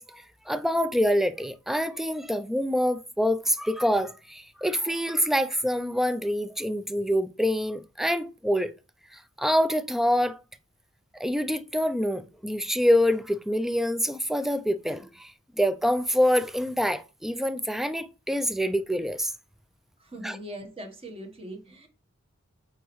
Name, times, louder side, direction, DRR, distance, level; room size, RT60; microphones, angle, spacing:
voice 1, 0.0-8.7 9.1-10.4 11.2-19.3 20.2-20.4, equal, ahead, 0.3 m, -26 dB
voice 2, 20.0-21.9, right 1 dB, 25° right, 1.2 m, -41 dB
8.2 x 4.0 x 3.1 m
head